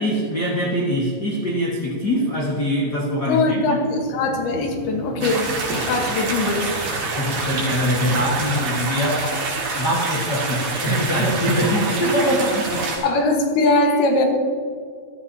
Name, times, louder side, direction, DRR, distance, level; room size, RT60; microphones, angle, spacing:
voice 1, 0.0-3.8 7.1-9.2 9.7-12.8, equal, 60° left, -5 dB, 1.1 m, -23 dB
voice 2, 3.3-6.7 13.0-14.3, left 2 dB, 80° left, 3 dB, 3.2 m, -21 dB
sound 1, 3.7-8.4, right 1 dB, 60° right, 3.2 m, -35 dB
sound 2, 5.2-13.0, right 3 dB, 80° right, 4.4 m, -26 dB
15.5 x 13.0 x 2.8 m, 2.2 s
omnidirectional pair, 4.4 m